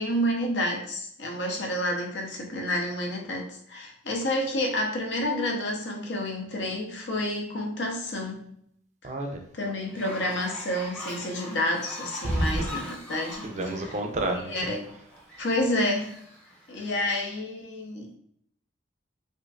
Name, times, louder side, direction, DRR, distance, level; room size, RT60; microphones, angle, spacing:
voice 1, 0.0-8.5 9.0-9.1 9.6-13.5 14.5-14.8 15.4-16.1 16.7-18.1, left 1 dB, 65° left, 1 dB, 0.7 m, -29 dB
voice 2, 9.0-9.4 12.2-12.8 13.4-14.7, right 1 dB, 40° right, 4 dB, 0.4 m, -29 dB
Fowl, 9.9-16.9, left 1 dB, 5° left, 0.7 m, -42 dB
4.4 x 2.6 x 2.4 m, 0.68 s
head